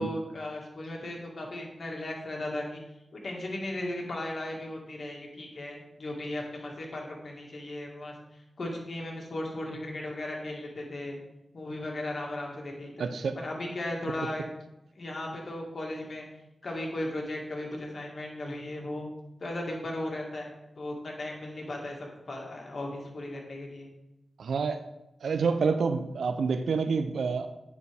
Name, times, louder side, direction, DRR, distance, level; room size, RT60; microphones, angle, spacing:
voice 1, 0.0-2.8 3.1-8.2 8.6-11.2 11.5-12.9 13.4-14.5 15.0-16.2 16.6-19.1 19.4-23.9, left 1 dB, 60° left, -1 dB, 1.8 m, -36 dB
voice 2, 13.0-13.4 24.4-24.8 25.2-27.5, right 5 dB, 85° right, 10 dB, 0.4 m, -28 dB
9.2 x 4.3 x 3.5 m, 0.91 s
cardioid pair, 45°, 0 cm